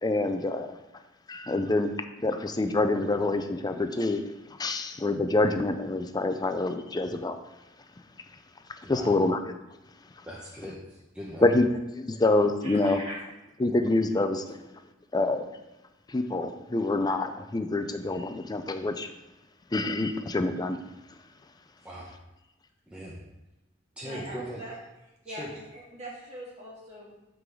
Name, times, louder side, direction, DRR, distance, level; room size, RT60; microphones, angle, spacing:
voice 1, 0.0-0.7 1.3-1.9 2.2-4.2 4.6-7.4 8.9-9.5 11.4-13.0 13.6-14.6 15.1-15.5 16.1-19.1 19.7-20.8, left 2 dB, 20° left, 7 dB, 0.5 m, -26 dB
voice 2, 8.8-9.2 10.3-11.6 21.8-22.1 22.9-23.2 24.0-24.6 25.2-25.5, equal, 5° right, -6 dB, 0.9 m, -40 dB
voice 3, 12.6-13.2 24.0-24.7 25.2-27.3, right 1 dB, 35° right, -5 dB, 2.1 m, -42 dB
6.1 x 3.9 x 6.2 m, 1.0 s
head